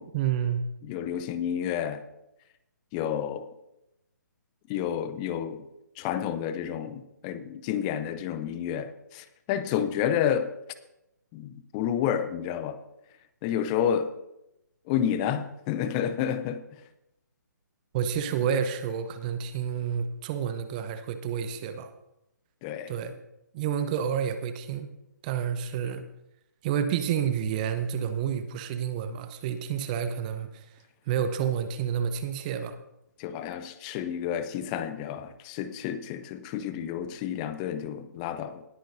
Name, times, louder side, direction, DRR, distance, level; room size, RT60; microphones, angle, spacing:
voice 1, 0.1-0.6 17.9-21.9 22.9-23.1 23.5-24.9 25.2-26.0 26.6-30.6 31.1-32.8, right 8 dB, 25° right, 0.8 m, -29 dB
voice 2, 0.8-2.0 2.9-3.5 4.7-5.7 6.0-10.5 11.3-12.8 13.4-14.1 14.9-16.6 22.6-22.9 33.2-38.6, left 9 dB, 20° left, 0.6 m, -30 dB
19.5 x 9.1 x 2.7 m
figure-of-eight pair, 140°, 10 cm